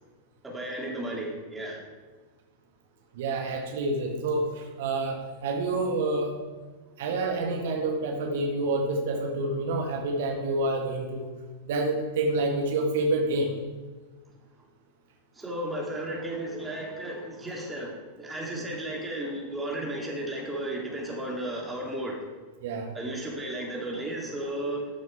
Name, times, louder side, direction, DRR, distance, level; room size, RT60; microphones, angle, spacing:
voice 1, 0.4-1.8 15.3-22.3 22.9-24.9, right 1 dB, 10° right, -3 dB, 2.8 m, -34 dB
voice 2, 3.1-6.3 7.0-11.3 11.7-13.6 22.6-22.9, right 2 dB, 55° right, 2 dB, 1.4 m, -28 dB
13.0 x 6.3 x 4.8 m, 1.4 s
figure-of-eight pair, 90°, 0 cm